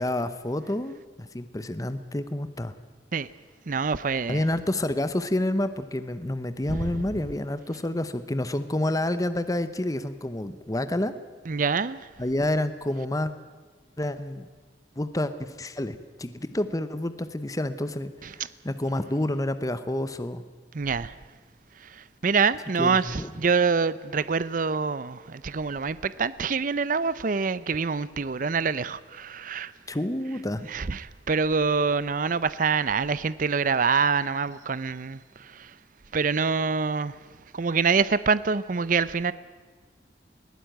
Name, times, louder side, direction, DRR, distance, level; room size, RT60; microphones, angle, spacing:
voice 1, 0.0-2.7 4.3-11.1 12.2-13.3 14.0-14.5 15.0-20.4 22.8-23.3 29.9-30.7, left 1 dB, 20° left, 0.8 m, -29 dB
voice 2, 3.7-4.4 6.7-7.0 11.5-12.1 20.7-21.1 21.8-29.7 30.7-35.7 36.1-37.2 37.5-39.3, right 5 dB, 50° right, 0.6 m, -26 dB
21.0 x 16.0 x 9.3 m
head